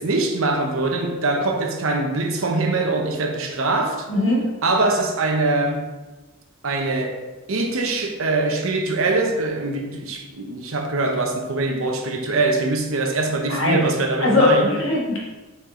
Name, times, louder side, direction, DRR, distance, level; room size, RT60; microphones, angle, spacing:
voice 1, 0.0-4.0 4.6-5.9 6.6-7.2 7.5-14.7, right 2 dB, 70° right, 0.9 m, -23 dB
voice 2, 4.1-4.4 13.5-13.8 14.2-15.2, left 2 dB, 60° left, 1.5 m, -19 dB
5.7 x 4.6 x 3.8 m
head